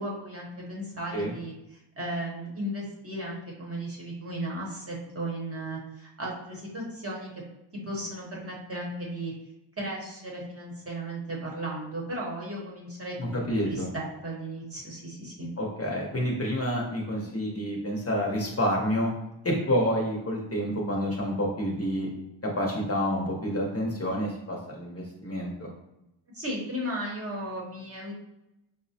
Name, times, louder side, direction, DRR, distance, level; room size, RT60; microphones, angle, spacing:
voice 1, 0.0-1.5 2.0-7.3 7.7-9.3 9.8-13.3 13.6-15.5 26.3-28.3, right 1 dB, 30° right, -3 dB, 0.8 m, -35 dB
voice 2, 13.2-13.9 15.6-19.1 19.4-22.1 22.4-25.7, equal, 30° left, -2 dB, 0.7 m, -28 dB
5.4 x 2.0 x 2.7 m, 0.90 s
wide cardioid pair, 145°, 48 cm